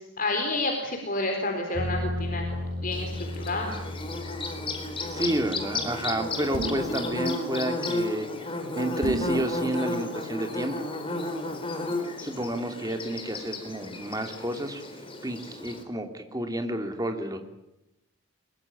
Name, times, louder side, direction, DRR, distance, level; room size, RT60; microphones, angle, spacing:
voice 1, 0.0-3.7, left 2 dB, 40° left, 2 dB, 3.9 m, -30 dB
sound 1, 1.7-7.3, left 1 dB, 45° right, 4.0 m, -36 dB
Bird / Buzz, 2.9-15.8, left 2 dB, 25° left, 3.9 m, -33 dB
voice 2, 5.1-8.3 8.7-10.7 12.2-14.8 15.2-17.4, right 1 dB, 15° right, 5 dB, 2.7 m, -30 dB
sound 2, 6.5-6.9 9.0-9.4, right 2 dB, 80° left, 5.1 m, -31 dB
23.5 x 22.5 x 9.8 m, 0.89 s
head